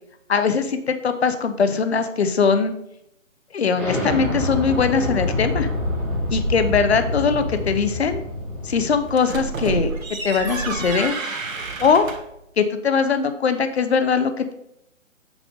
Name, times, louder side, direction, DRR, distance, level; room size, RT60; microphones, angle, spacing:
voice 1, 0.3-2.7 3.5-5.7 6.3-8.2 8.6-9.9 10.2-11.1 11.8-12.1 12.6-14.5, left 5 dB, 55° left, 10 dB, 0.9 m, -21 dB
Explosion, 3.7-9.2, left 1 dB, 10° left, 1.6 m, -26 dB
sound 1, 9.1-12.4, right 3 dB, 85° right, 1.8 m, -29 dB
8.3 x 5.0 x 5.2 m, 0.79 s
hypercardioid pair, 170°, 39 cm